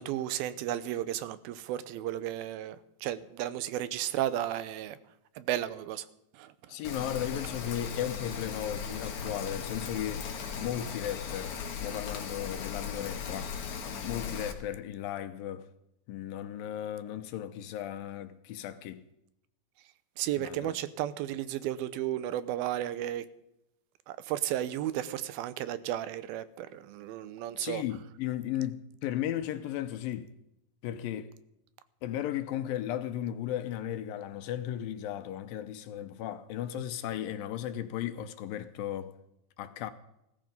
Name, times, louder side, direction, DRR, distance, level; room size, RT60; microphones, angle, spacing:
voice 1, 0.0-2.8 3.0-5.0 5.4-6.1 6.3-6.5 20.2-23.3 24.1-27.8, right 12 dB, 90° right, 2.6 m, -33 dB
voice 2, 6.7-10.3 10.6-13.6 14.0-15.7 16.1-19.1 20.4-20.8 27.6-30.3 30.8-31.3 32.0-39.1 39.6-39.9, left 11 dB, 80° left, 2.5 m, -35 dB
Rain, 6.8-14.5, left 6 dB, 60° left, 2.8 m, -37 dB
16.0 x 14.0 x 5.3 m
omnidirectional pair, 4.3 m